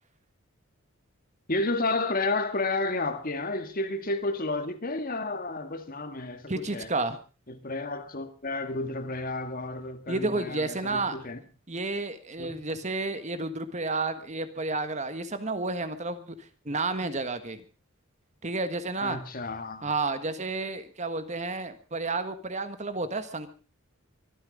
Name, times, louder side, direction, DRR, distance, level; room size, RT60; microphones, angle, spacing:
voice 1, 1.5-6.9 7.5-11.4 12.4-12.5 19.0-19.9, left 2 dB, 40° left, 1.9 m, -31 dB
voice 2, 6.5-7.2 10.1-11.2 11.7-16.3 16.6-17.6 18.4-19.2 19.8-23.5, right 3 dB, 35° right, 1.5 m, -31 dB
24.0 x 9.9 x 5.2 m
head